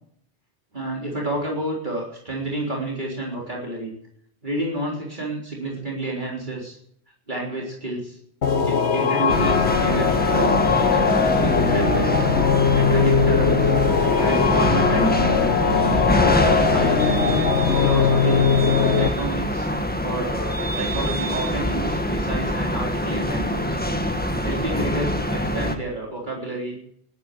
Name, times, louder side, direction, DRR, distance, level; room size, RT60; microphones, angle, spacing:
voice 1, 0.7-3.9 4.4-6.8 7.3-8.2 8.7-12.2 12.7-13.7 14.2-15.6 16.2-17.2 17.8-18.5 19.0-19.7 20.0-23.8 24.4-26.8, right 2 dB, 45° right, -3 dB, 4.0 m, -30 dB
sound 1, 8.4-19.1, left 6 dB, 80° left, 1.3 m, -20 dB
sound 2, 9.3-25.7, equal, 10° left, 1.7 m, -24 dB
20.0 x 10.0 x 6.7 m, 0.69 s
omnidirectional pair, 1.1 m